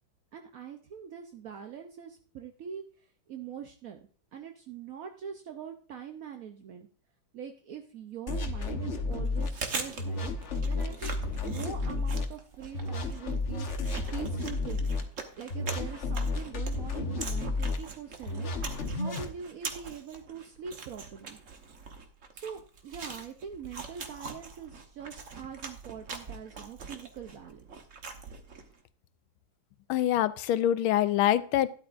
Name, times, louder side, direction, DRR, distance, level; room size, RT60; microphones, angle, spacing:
voice 1, 0.3-4.0 4.3-6.9 7.3-10.3 10.6-14.9 15.4-18.5 18.8-21.4 22.3-27.7, right 8 dB, 65° right, 5 dB, 0.8 m, -43 dB
sound 1, 8.3-9.5 10.0-12.2 12.7-15.0 15.5-17.8 18.3-19.3, left 3 dB, 45° left, 1.1 m, -32 dB
Chewing mastication, 9.2-28.8, right 4 dB, 45° right, 1.2 m, -43 dB
voice 2, 29.9-31.7, left 12 dB, 80° left, 15 dB, 1.4 m, -25 dB
12.5 x 11.0 x 2.5 m, 0.43 s
omnidirectional pair, 2.4 m